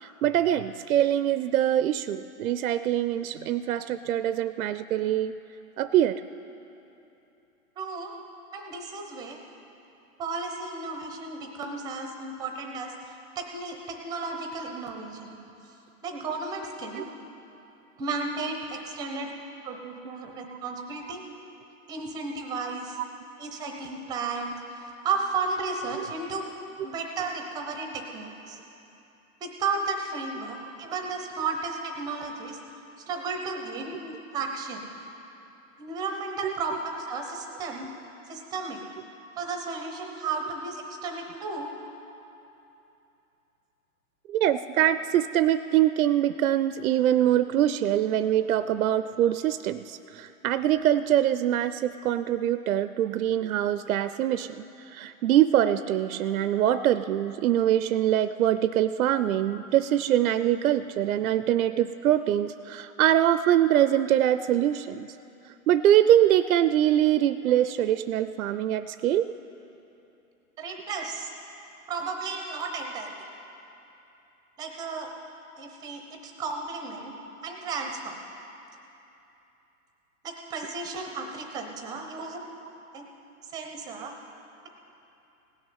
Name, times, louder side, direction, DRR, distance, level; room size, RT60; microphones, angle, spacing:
voice 1, 0.0-5.4 5.8-6.2 17.0-17.1 26.0-26.1 36.4-36.5 44.3-65.1 65.7-69.3, right 11 dB, 75° right, 13 dB, 0.5 m, -24 dB
voice 2, 7.8-8.1 8.5-9.4 10.2-15.3 16.0-17.1 18.0-19.3 19.6-21.2 21.9-23.0 23.4-24.6 25.0-26.4 26.8-28.6 29.4-32.6 33.1-34.8 35.8-37.9 38.3-38.8 39.4-41.7 70.6-71.3 71.9-73.2 74.6-75.1 75.6-77.2 77.4-78.2 80.2-82.4 82.9-83.0 83.5-84.1, right 4 dB, 10° right, 3 dB, 0.6 m, -33 dB
17.0 x 6.5 x 9.3 m, 2.9 s
hypercardioid pair, 145°, 43 cm